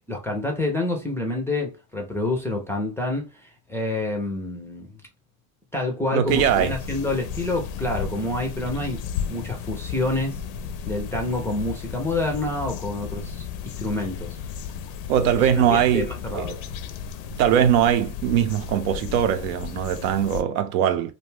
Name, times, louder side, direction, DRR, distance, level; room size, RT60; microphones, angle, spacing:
voice 1, 0.1-5.0 5.7-9.0 9.3-10.4 10.9-14.4 15.5-16.6, left 2 dB, 5° left, 0.3 m, -28 dB
voice 2, 6.1-6.7 15.1-16.6 17.4-21.1, right 9 dB, 85° right, 0.6 m, -21 dB
sound 1, 6.3-20.4, left 7 dB, 65° left, 0.5 m, -34 dB
2.5 x 2.2 x 3.1 m
supercardioid pair, 120°, 42 cm